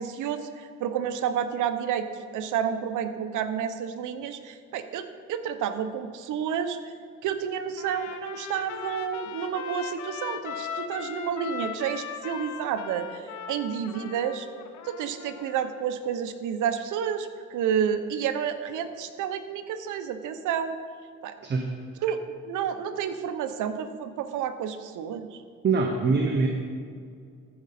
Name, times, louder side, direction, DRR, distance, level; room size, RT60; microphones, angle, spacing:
voice 1, 0.0-6.9 7.2-14.5 14.8-20.8 21.2-21.3 22.0-22.2 22.4-25.4, right 8 dB, 85° right, 9 dB, 0.7 m, -30 dB
Trumpet, 7.8-15.9, left 8 dB, 70° left, 0.8 m, -39 dB
voice 2, 25.6-26.5, right 4 dB, 35° right, 2 dB, 0.9 m, -23 dB
14.5 x 5.2 x 4.2 m, 2.2 s
cardioid pair, 90°, 30 cm